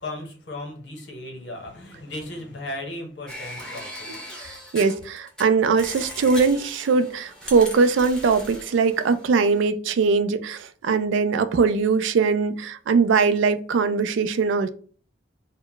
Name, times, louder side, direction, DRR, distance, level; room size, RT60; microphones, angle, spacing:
voice 1, 0.0-4.1, left 1 dB, 60° left, 0.9 m, -36 dB
sound 1, 3.3-5.4 5.8-9.7, equal, 5° left, 0.5 m, -39 dB
voice 2, 4.4-14.7, right 5 dB, 80° right, 0.3 m, -21 dB
2.1 x 2.1 x 3.8 m
head